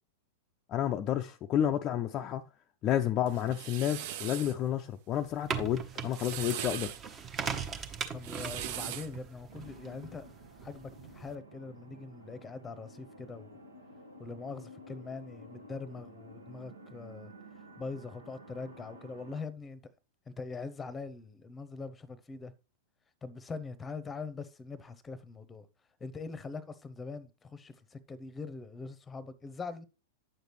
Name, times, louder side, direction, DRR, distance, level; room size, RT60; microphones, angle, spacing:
voice 1, 0.7-2.4 2.8-6.9, left 11 dB, 35° left, 0.4 m, -30 dB
sound 1, 3.3-4.6 5.9-7.0 8.1-9.2, right 11 dB, 50° right, 0.5 m, -40 dB
sound 2, 5.1-11.3, right 6 dB, 30° right, 0.9 m, -40 dB
voice 2, 8.1-10.2 10.6-13.6 14.2-17.3 17.8-19.9 20.3-22.5 23.2-25.7 26.0-29.8, left 4 dB, 15° left, 0.8 m, -42 dB
sound 3, 9.5-19.4, equal, 85° right, 1.2 m, -52 dB
9.2 x 6.6 x 3.1 m
figure-of-eight pair, 100°, 0 cm